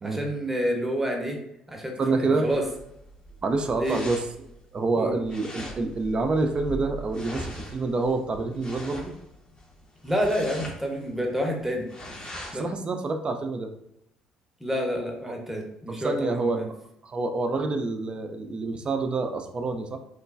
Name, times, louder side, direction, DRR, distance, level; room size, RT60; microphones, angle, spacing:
voice 1, 0.0-1.4 1.7-2.7 3.8-4.0 5.0-5.2 10.0-11.9 12.5-12.7 14.6-16.7, equal, 10° right, 1 dB, 0.8 m, -28 dB
voice 2, 2.0-2.5 3.4-4.2 4.7-9.1 12.5-13.7 15.9-16.7 17.0-20.0, right 3 dB, 35° right, 6 dB, 0.4 m, -27 dB
sound 1, 2.5-12.7, equal, 30° left, 0.7 m, -41 dB
3.1 x 2.2 x 2.4 m, 0.78 s
hypercardioid pair, 50°, 3 cm